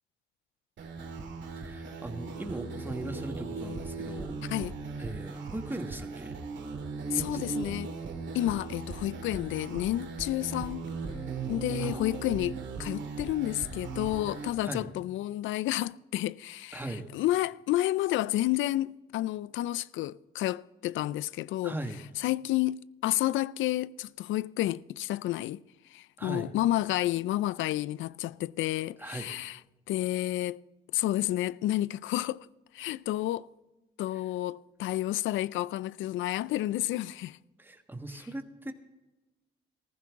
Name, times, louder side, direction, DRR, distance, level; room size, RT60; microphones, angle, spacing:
sound 1, 0.8-14.5, right 4 dB, 65° right, 2.4 m, -38 dB
voice 1, 1.6-4.4 5.0-6.4 7.1-7.5 11.8-12.1 14.6-14.9 16.7-17.1 21.6-22.0 26.2-26.5 29.0-29.3 37.6-38.7, right 1 dB, 10° right, 1.5 m, -39 dB
voice 2, 7.1-7.9 8.3-10.9 11.5-16.8 17.1-21.7 22.2-25.6 25.9-29.6 29.9-30.6 30.9-32.5 32.7-33.5 34.0-37.4, left 15 dB, 75° left, 0.4 m, -30 dB
15.5 x 14.5 x 3.6 m
cardioid pair, 90°, 20 cm